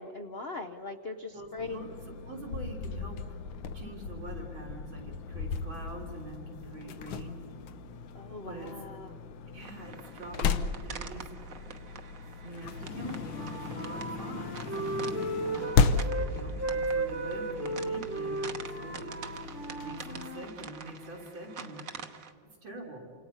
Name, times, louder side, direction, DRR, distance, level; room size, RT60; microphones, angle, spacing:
voice 1, 0.0-1.9 8.1-9.1, left 3 dB, 55° left, 5 dB, 0.6 m, -40 dB
voice 2, 1.3-3.4 3.7-7.4 8.4-8.7 9.5-11.7 12.4-19.2 19.7-21.8 22.6-23.0, right 2 dB, 85° right, -1 dB, 4.5 m, -44 dB
sound 1, 1.6-20.3, left 5 dB, 75° left, 1.6 m, -35 dB
sound 2, 9.6-22.3, right 6 dB, 50° right, 1.3 m, -47 dB
Wind instrument woodwind instrument, 12.9-16.3 16.6-20.5, right 2 dB, 10° right, 1.2 m, -35 dB
29.0 x 26.5 x 5.6 m, 2.2 s
omnidirectional pair, 2.1 m